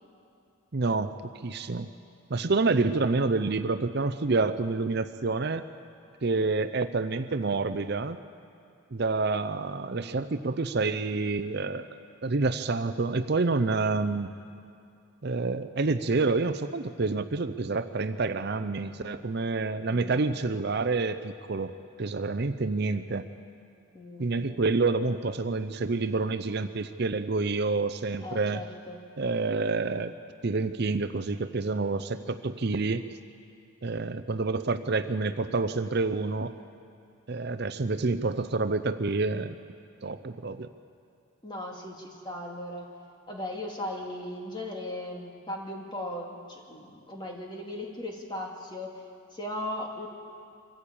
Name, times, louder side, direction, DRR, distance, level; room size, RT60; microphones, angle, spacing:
voice 1, 0.7-1.1 1.4-1.9 2.3-5.6 6.2-8.2 8.9-11.9 12.2-14.3 15.2-23.3 24.2-28.6 29.2-30.1 30.4-33.1 33.8-36.5 37.3-39.6 40.0-40.7, right 3 dB, 50° right, 10 dB, 0.6 m, -28 dB
voice 2, 19.9-20.3 23.9-24.3 28.2-29.0 41.4-42.9 43.3-49.0 49.3-50.1, left 1 dB, 20° left, 0 dB, 2.5 m, -37 dB
24.5 x 14.5 x 8.7 m, 2.5 s
head